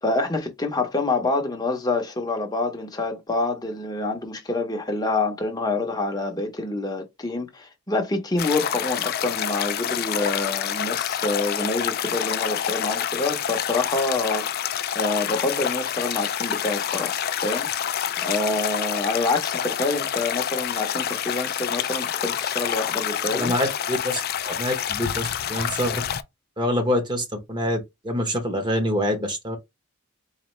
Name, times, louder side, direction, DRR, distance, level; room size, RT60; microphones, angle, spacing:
voice 1, 0.0-14.5 14.9-17.9 18.2-23.5, left 2 dB, 20° left, 0.9 m, -27 dB
sound 1, 8.4-26.2, left 9 dB, 45° left, 0.3 m, -27 dB
voice 2, 23.3-26.0 26.6-29.6, left 1 dB, 20° right, 1.1 m, -26 dB
4.1 x 2.7 x 3.2 m
head